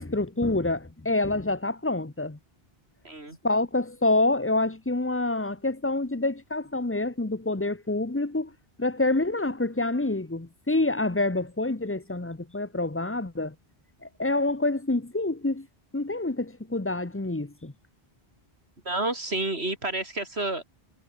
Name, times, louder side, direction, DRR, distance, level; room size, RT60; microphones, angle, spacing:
voice 1, 0.0-2.4 3.4-8.5 8.8-13.5 14.0-15.7 15.9-17.7, left 2 dB, 15° left, 1.1 m, -27 dB
voice 2, 3.0-3.4 18.8-20.6, right 2 dB, 85° right, 4.9 m, -29 dB
omnidirectional pair, 1.1 m